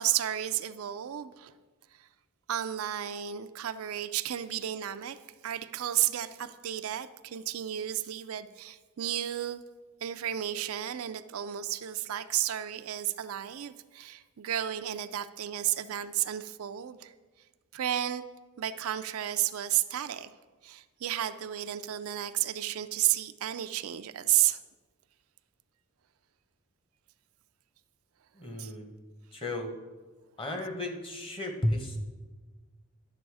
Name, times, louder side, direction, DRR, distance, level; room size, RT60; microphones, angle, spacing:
voice 1, 0.0-1.6 2.0-2.1 2.5-5.2 5.4-9.6 10.0-17.1 17.7-18.2 18.6-20.3 20.6-24.6 28.6-28.7, right 12 dB, 70° right, 10 dB, 0.4 m, -32 dB
voice 2, 28.3-28.9 29.3-29.7 30.4-32.0, left 1 dB, 25° left, 4 dB, 1.1 m, -33 dB
10.5 x 7.0 x 4.8 m, 1.3 s
head